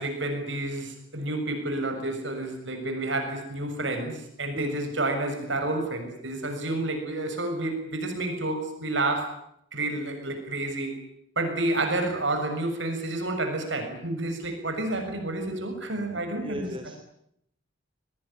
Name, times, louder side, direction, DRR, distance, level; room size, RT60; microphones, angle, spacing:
voice 1, 0.0-9.4 9.7-11.0 11.3-16.9, right 2 dB, 65° right, 5 dB, 6.8 m, -30 dB
voice 2, 16.4-17.0, equal, 25° right, 7 dB, 2.8 m, -35 dB
25.5 x 20.0 x 10.0 m, 0.73 s
head